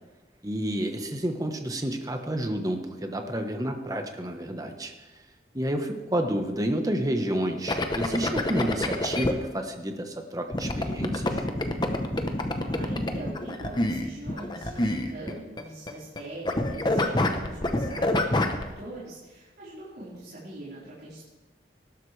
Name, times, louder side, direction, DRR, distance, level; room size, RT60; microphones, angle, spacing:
voice 1, 0.4-4.9 5.5-11.4, right 1 dB, 20° right, 5 dB, 1.1 m, -30 dB
sound 1, 7.7-9.3 10.5-16.2 16.5-18.6, left 1 dB, 25° left, 0.9 m, -27 dB
voice 2, 12.6-21.2, right 1 dB, 60° right, -11 dB, 4.4 m, -42 dB
18.5 x 12.0 x 3.3 m, 1.1 s
head